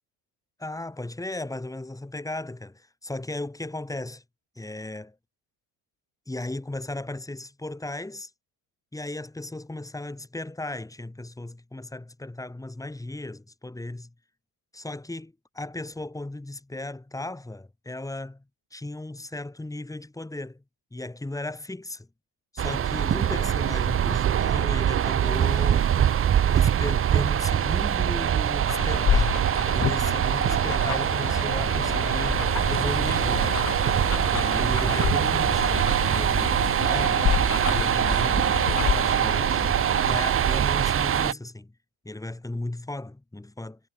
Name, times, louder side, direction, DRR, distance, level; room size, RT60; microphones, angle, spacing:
voice 1, 0.6-4.2 4.6-5.2 6.3-8.3 8.9-14.1 14.7-18.4 18.7-20.6 20.9-22.1 22.5-26.0 26.5-29.4 29.7-33.6 34.3-37.3 37.7-39.6 40.0-41.7 42.0-43.8, left 2 dB, 5° left, 7.6 m, -35 dB
sound 1, 22.6-41.3, right 9 dB, 30° right, 0.8 m, -23 dB
sound 2, 28.7-40.3, left 10 dB, 40° left, 3.6 m, -30 dB
cardioid pair, 145°, 47 cm